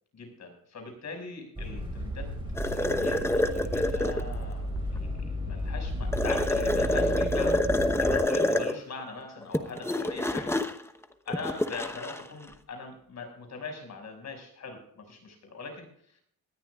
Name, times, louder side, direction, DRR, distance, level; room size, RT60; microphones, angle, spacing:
voice 1, 0.1-2.3 2.6-10.5 11.3-16.2, left 4 dB, 55° left, 4 dB, 6.1 m, -41 dB
sound 1, 1.6-8.2, right 1 dB, 15° right, 5.5 m, -33 dB
sound 2, 2.6-4.3 6.1-8.8 9.4-12.2, left 1 dB, 10° left, 1.0 m, -27 dB
20.5 x 13.5 x 2.4 m, 0.64 s
cardioid pair, 135°, 33 cm